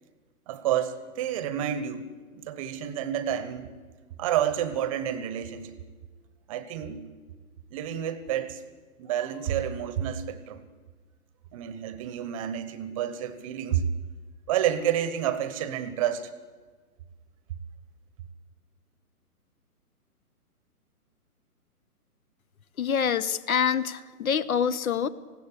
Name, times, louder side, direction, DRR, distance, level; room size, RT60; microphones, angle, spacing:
voice 1, 0.5-2.1 2.3-3.7 4.2-5.8 6.5-7.0 7.7-8.6 9.0-10.6 11.5-13.9 14.5-16.3, right 10 dB, 20° right, 13 dB, 1.0 m, -29 dB
voice 2, 22.8-25.1, left 7 dB, 65° left, 17 dB, 1.2 m, -26 dB
19.0 x 16.0 x 9.9 m, 1.4 s
hypercardioid pair, 150°, 46 cm